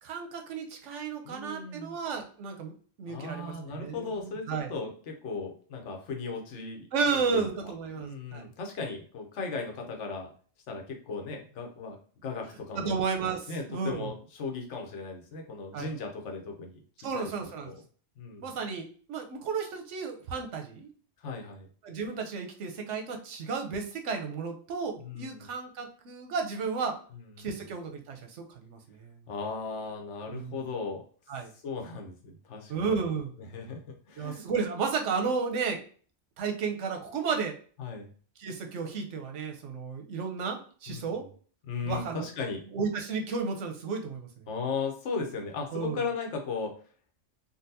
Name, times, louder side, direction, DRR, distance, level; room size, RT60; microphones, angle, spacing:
voice 1, 0.0-2.7 3.0-4.7 6.9-8.5 12.8-14.1 15.7-15.9 17.0-17.7 18.4-20.9 21.8-27.0 27.4-29.2 30.3-30.7 31.3-31.5 32.7-33.3 34.2-35.8 36.4-37.5 38.4-41.3 41.8-42.3 42.7-44.5 45.7-46.0, right 5 dB, 85° right, 4 dB, 1.0 m, -33 dB
voice 2, 1.2-2.0 3.1-7.5 7.9-10.3 10.7-13.0 13.5-16.8 17.1-17.3 17.6-17.7 18.2-18.5 21.2-21.7 25.0-25.5 27.4-27.5 29.3-31.0 31.6-32.9 33.4-34.4 37.8-38.1 40.9-41.2 41.7-42.6 44.5-46.7, left 4 dB, 75° left, 2 dB, 1.1 m, -37 dB
3.8 x 2.2 x 2.6 m, 0.43 s
omnidirectional pair, 1.2 m